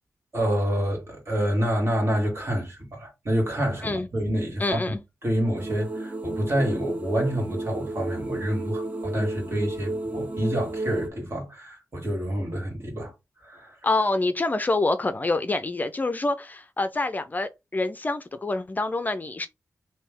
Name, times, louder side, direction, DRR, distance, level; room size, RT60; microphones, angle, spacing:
voice 1, 0.3-5.0 5.2-13.1 13.4-13.8, equal, 45° right, 2.0 m, -27 dB
voice 2, 4.6-5.0 13.8-19.5, left 2 dB, 30° left, 0.4 m, -26 dB
Drone Normal, 5.6-11.1, right 2 dB, 25° right, 0.6 m, -32 dB
3.4 x 2.7 x 3.4 m
wide cardioid pair, 80°, 6 cm